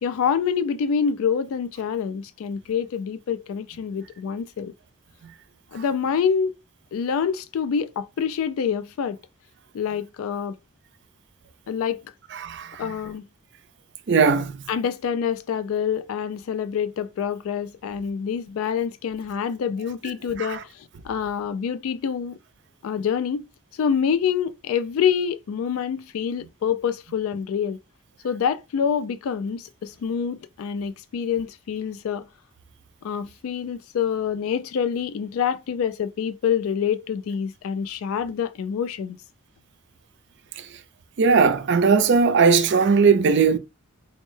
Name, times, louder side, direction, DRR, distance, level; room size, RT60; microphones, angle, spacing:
voice 1, 0.0-4.7 5.7-6.5 6.9-9.2 9.7-10.6 11.7-12.0 12.8-13.2 14.7-22.4 22.8-23.4 23.7-27.8 28.2-32.3 33.0-39.2, left 7 dB, 75° left, 0.3 m, -26 dB
voice 2, 12.3-12.9 14.1-14.6 20.4-20.6 41.2-43.6, right 5 dB, 50° right, 0.4 m, -18 dB
4.2 x 2.1 x 3.1 m
head